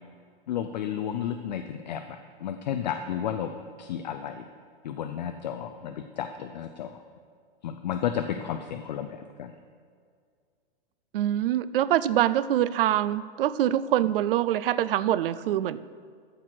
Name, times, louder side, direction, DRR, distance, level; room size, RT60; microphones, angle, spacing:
voice 1, 0.5-3.5 3.8-4.4 4.8-7.0 7.6-9.5, left 9 dB, 45° left, 8 dB, 0.4 m, -32 dB
voice 2, 11.1-15.8, right 12 dB, 65° right, 16 dB, 0.4 m, -24 dB
14.0 x 4.6 x 5.9 m, 2.1 s
hypercardioid pair, 170°, 30 cm